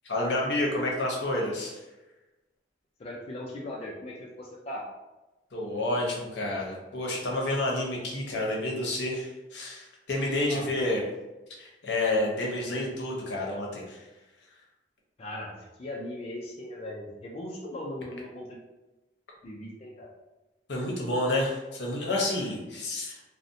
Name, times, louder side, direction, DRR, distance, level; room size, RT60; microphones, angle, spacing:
voice 1, 0.0-1.8 5.5-11.0 11.6-14.0 20.7-23.2, left 1 dB, 75° left, -2 dB, 0.7 m, -29 dB
voice 2, 3.0-4.8 10.5-10.7 15.2-18.6 19.4-20.1, left 1 dB, 35° left, -3 dB, 0.4 m, -39 dB
2.6 x 2.0 x 2.6 m, 1.1 s
head